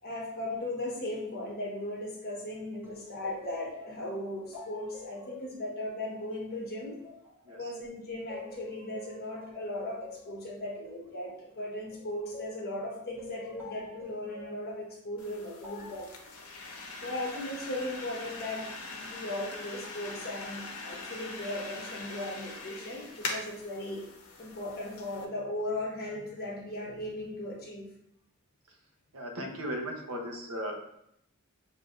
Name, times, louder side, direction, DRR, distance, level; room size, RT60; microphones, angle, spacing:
voice 1, 0.0-7.0 7.6-16.1 17.0-24.0 24.4-27.9, left 1 dB, 45° left, -2 dB, 1.1 m, -37 dB
sound 1, 2.8-7.8 8.3-12.6 13.2-14.6 15.6-16.1, left 3 dB, 10° right, 1.4 m, -47 dB
sound 2, 15.2-25.2, left 3 dB, 75° left, 0.8 m, -42 dB
voice 2, 29.1-30.8, equal, 85° right, 1 dB, 0.9 m, -37 dB
6.7 x 2.7 x 2.5 m, 0.75 s
head